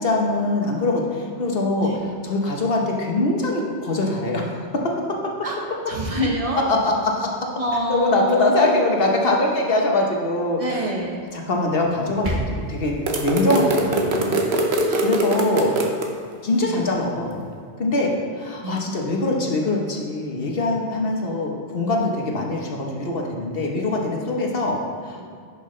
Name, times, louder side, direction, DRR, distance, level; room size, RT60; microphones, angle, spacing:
voice 1, 0.0-1.9 2.2-4.9 6.7-7.3 7.9-10.6 11.3-12.9 13.2-14.4 15.0-15.7 16.4-17.4 17.8-25.2, left 2 dB, 65° left, 0 dB, 1.3 m, -23 dB
voice 2, 5.9-6.6 7.6-8.7 10.6-11.2 14.9-15.1 16.6-17.0 18.6-18.8, equal, 35° right, 0 dB, 1.1 m, -26 dB
sound 1, 11.8-12.8, right 1 dB, 50° right, 1.5 m, -29 dB
sound 2, 13.1-16.1, right 2 dB, 75° right, 1.1 m, -22 dB
10.5 x 5.7 x 3.2 m, 2.3 s
omnidirectional pair, 1.1 m